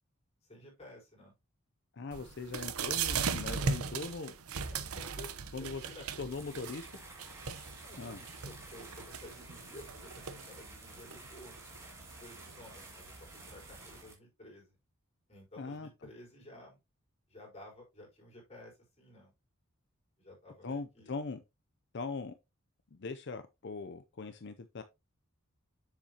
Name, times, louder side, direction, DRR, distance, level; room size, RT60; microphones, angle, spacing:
voice 1, 0.4-1.3 4.7-6.1 7.8-11.5 12.2-14.8 15.3-16.8 17.3-19.3 20.2-21.1, left 1 dB, 30° left, 4.2 m, -53 dB
voice 2, 1.9-4.3 5.5-5.8 6.2-6.9 8.0-8.2 15.6-15.9 20.6-21.4 21.9-22.4 22.9-24.8, left 4 dB, 50° left, 0.5 m, -40 dB
sound 1, 2.1-14.0, right 5 dB, 85° right, 0.9 m, -39 dB
sound 2, 5.8-14.1, right 2 dB, 15° right, 2.3 m, -52 dB
7.2 x 7.2 x 2.9 m
head